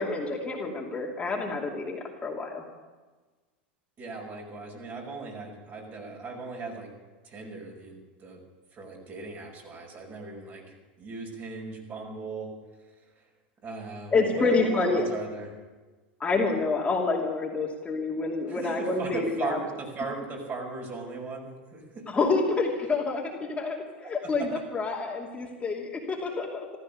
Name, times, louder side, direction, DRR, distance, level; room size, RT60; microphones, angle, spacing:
voice 1, 0.0-2.6 14.1-15.1 16.2-19.6 22.1-26.6, left 3 dB, 20° left, -2 dB, 2.8 m, -28 dB
voice 2, 4.0-6.9 7.2-8.4 8.7-10.6 11.0-12.5 13.6-15.5 18.5-22.0 24.0-24.6, right 3 dB, 35° right, 0 dB, 5.4 m, -37 dB
15.0 x 14.0 x 6.7 m, 1.3 s
hypercardioid pair, 105°, 6 cm